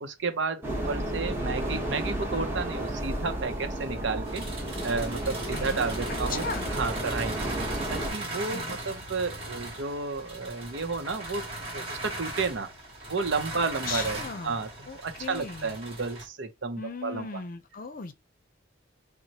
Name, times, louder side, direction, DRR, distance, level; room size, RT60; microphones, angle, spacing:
voice 1, 0.0-4.5 4.8-7.5 7.9-11.5 11.7-12.7 13.1-14.7 15.0-17.4, right 4 dB, 70° right, 0.7 m, -32 dB
sound 1, 0.6-8.1, right 1 dB, 15° right, 1.1 m, -32 dB
sound 2, 4.3-16.3, right 2 dB, 30° right, 1.8 m, -38 dB
voice 2, 5.5-5.9 6.3-6.7 8.5-8.8 13.9-14.6 14.9-15.7 16.8-18.1, left 5 dB, 45° left, 0.6 m, -37 dB
5.9 x 2.1 x 2.8 m
head